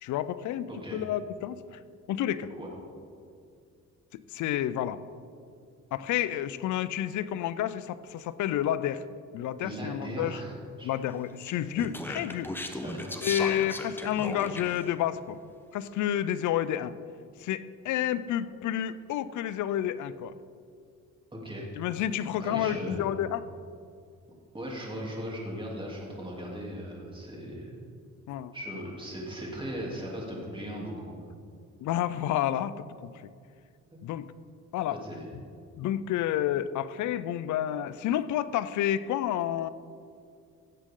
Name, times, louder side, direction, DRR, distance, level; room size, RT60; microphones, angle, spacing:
voice 1, 0.0-1.8 2.1-2.5 4.1-5.0 5.9-9.0 9.3-10.4 10.8-12.5 13.2-15.4 15.7-16.9 17.4-20.3 21.8-23.5 28.3-28.5 31.8-33.1 34.0-34.3 34.7-35.0 35.8-39.7, left 11 dB, 75° left, 15 dB, 0.5 m, -30 dB
voice 2, 0.7-1.0 2.6-2.7 9.6-10.5 10.8-10.9 12.8-13.2 21.3-21.6 22.4-23.0 24.5-27.7 28.5-31.2 33.9-34.0 34.9-35.2, equal, 15° right, -3 dB, 3.0 m, -38 dB
Speech, 11.4-14.9, left 1 dB, 5° left, 0.9 m, -37 dB
16.5 x 7.4 x 3.8 m, 2.3 s
cardioid pair, 90°, 30 cm